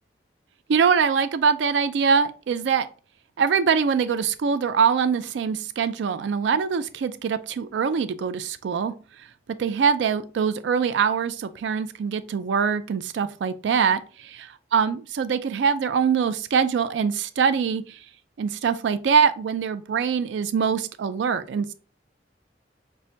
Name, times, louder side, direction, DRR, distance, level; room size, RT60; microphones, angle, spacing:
voice 1, 0.7-2.9 3.4-8.9 9.6-18.0 18.4-21.7, right 6 dB, 85° right, 0.3 m, -23 dB
5.4 x 2.1 x 2.6 m
head